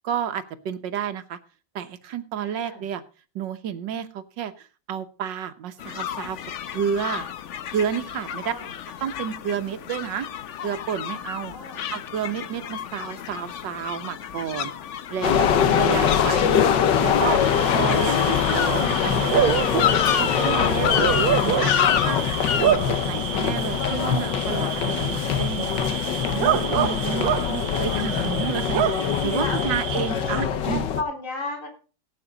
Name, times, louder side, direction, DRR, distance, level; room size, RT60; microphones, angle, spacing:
voice 1, 0.0-1.4 1.8-3.0 3.4-6.4 6.7-7.3 7.7-8.5 9.0-10.3 10.6-11.5 11.9-14.7 15.1-16.7 17.0-17.4 17.7-19.8 20.1-21.1 21.4-22.2 22.6-25.9 26.3-30.9, right 8 dB, 80° right, 10 dB, 1.7 m, -30 dB
voice 2, 2.4-2.9 8.4-8.7 11.5-11.9 16.0-16.2 27.1-28.1 29.4-31.7, left 2 dB, 45° left, 1 dB, 4.2 m, -35 dB
sound 1, 5.8-22.8, left 9 dB, 60° left, 0.8 m, -30 dB
sound 2, 15.2-31.0, left 8 dB, 80° left, 1.6 m, -23 dB
Bark / Cricket, 17.1-30.4, right 10 dB, 65° right, 1.1 m, -28 dB
17.5 x 8.6 x 3.9 m, 0.36 s
omnidirectional pair, 2.0 m